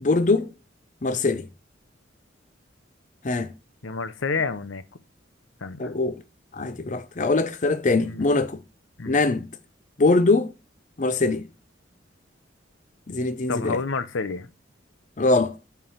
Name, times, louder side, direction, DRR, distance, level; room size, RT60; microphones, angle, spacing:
voice 1, 0.0-0.5 1.0-1.5 3.2-3.5 5.8-6.2 6.5-8.6 9.1-9.5 10.0-10.5 11.0-11.5 13.1-13.8 15.2-15.6, left 3 dB, 40° left, 0.6 m, -22 dB
voice 2, 3.8-4.8 5.6-5.9 8.0-8.2 9.0-9.2 13.5-14.5, left 4 dB, 85° left, 0.8 m, -29 dB
9.0 x 4.7 x 5.5 m
head